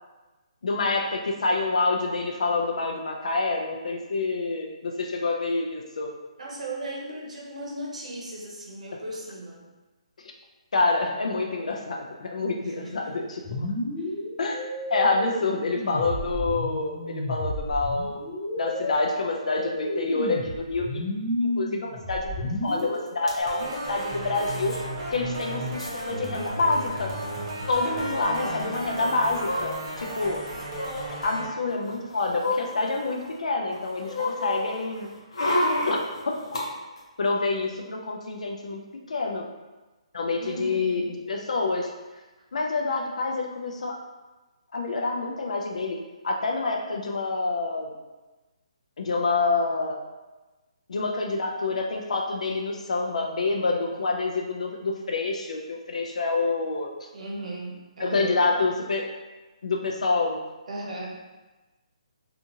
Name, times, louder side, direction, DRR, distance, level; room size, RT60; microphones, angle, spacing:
voice 1, 0.6-6.1 10.2-10.3 10.7-13.7 14.4-14.6 14.9-21.0 21.4-24.7 25.1-27.1 27.7-30.4 31.1-35.1 35.9-36.0 36.3-36.4 37.2-38.8 39.1-39.5 40.1-41.9 42.5-44.0 44.7-46.0 46.2-47.9 49.0-50.0 50.9-56.9 58.0-59.1 59.6-60.4, left 3 dB, 75° left, 1 dB, 0.4 m, -27 dB
voice 2, 6.4-9.6 12.6-13.0 27.8-28.8 40.4-41.2 57.1-58.4 60.7-61.1, right 2 dB, 75° right, -2 dB, 0.9 m, -36 dB
sound 1, 13.4-23.4, left 1 dB, 25° left, 0.5 m, -31 dB
sound 2, 22.8-22.9 23.1-23.4 24.4-24.8 25.1-25.2 25.4-26.0 26.9-27.0 27.2-27.4 29.0-30.1 30.7-31.1 31.7-33.3 33.7-36.6 37.0-37.1, left 1 dB, 55° left, 0.7 m, -30 dB
sound 3, 23.5-31.5, right 1 dB, 30° right, 0.6 m, -34 dB
2.7 x 2.4 x 2.6 m, 1.2 s
hypercardioid pair, 170°, 4 cm